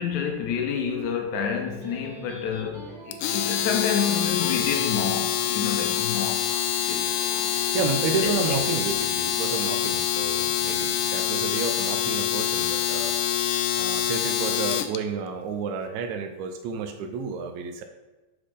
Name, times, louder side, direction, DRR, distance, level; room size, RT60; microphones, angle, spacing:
voice 1, 0.0-7.5 8.2-8.6, left 7 dB, 70° left, 1.9 m, -29 dB
Electric guitar, 1.6-8.8, right 3 dB, 55° right, 3.4 m, -45 dB
Domestic sounds home sounds, 3.1-15.0, left 10 dB, 90° left, 1.7 m, -26 dB
voice 2, 7.7-13.2 13.5-17.8, right 5 dB, 90° right, 1.6 m, -31 dB
7.8 x 6.4 x 3.7 m
omnidirectional pair, 4.0 m